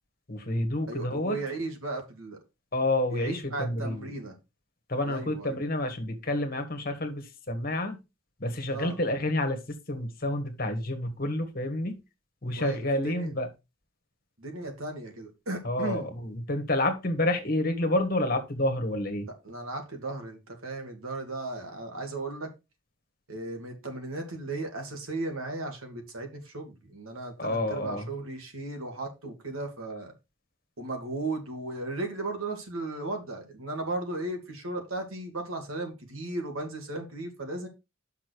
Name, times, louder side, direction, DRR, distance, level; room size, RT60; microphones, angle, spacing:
voice 1, 0.3-1.4 2.7-4.0 4.9-8.0 8.4-12.0 12.4-13.5 15.6-19.3 27.4-28.1, left 1 dB, 45° left, 1.5 m, -29 dB
voice 2, 0.9-2.4 3.1-4.3 5.0-5.6 8.7-9.0 12.6-13.3 14.4-16.1 19.4-22.5 23.3-30.1 30.8-37.7, right 2 dB, 90° right, 2.2 m, -36 dB
6.6 x 5.9 x 4.6 m
head